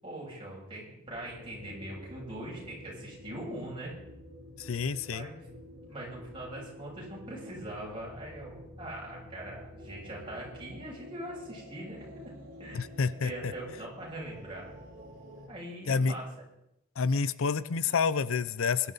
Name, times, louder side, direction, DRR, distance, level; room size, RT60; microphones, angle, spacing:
voice 1, 0.0-3.9 5.1-5.4 5.9-12.0 12.6-12.8 13.2-14.7 15.5-16.3, right 1 dB, 25° right, -4 dB, 6.8 m, -41 dB
sound 1, 1.1-15.5, equal, 45° right, 3.9 m, -49 dB
voice 2, 4.6-5.3 12.7-13.3 15.9-16.1 17.0-18.9, left 5 dB, 80° left, 16 dB, 0.6 m, -28 dB
22.5 x 11.5 x 4.0 m, 0.83 s
head